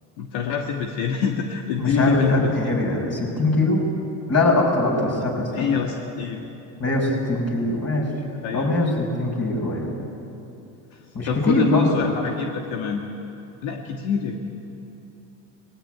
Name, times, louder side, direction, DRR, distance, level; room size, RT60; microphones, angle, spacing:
voice 1, 0.2-2.5 5.5-6.4 8.4-8.7 10.9-13.0 13.6-14.4, left 6 dB, 70° left, 2 dB, 1.8 m, -25 dB
voice 2, 1.8-3.8 4.3-5.7 6.8-8.0 8.5-10.0 11.1-12.1, left 2 dB, 30° left, 0 dB, 6.0 m, -22 dB
19.5 x 17.0 x 9.3 m, 2.8 s
supercardioid pair, 90°, 47 cm